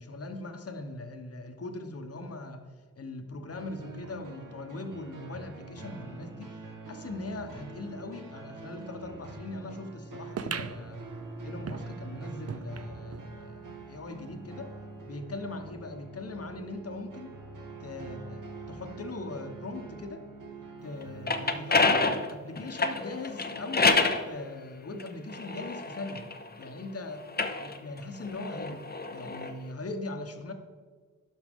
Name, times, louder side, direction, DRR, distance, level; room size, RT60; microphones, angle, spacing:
voice 1, 0.0-2.6 3.0-6.6 6.9-11.0 11.4-14.7 15.1-17.3 17.8-18.4 18.7-20.3 20.8-26.3 26.6-27.3 27.6-28.8 29.1-30.5, left 2 dB, 50° left, 6 dB, 1.1 m, -40 dB
sound 1, 3.5-21.9, right 3 dB, 80° right, 1.3 m, -44 dB
sound 2, 10.4-13.3 13.8-13.9 14.1-14.2 14.9-15.0, right 7 dB, 50° right, 0.5 m, -40 dB
sound 3, 21.0-24.2 25.0-26.7 27.2-29.5, left 3 dB, 30° left, 0.7 m, -28 dB
11.5 x 6.4 x 3.6 m, 1.5 s
wide cardioid pair, 90°, 32 cm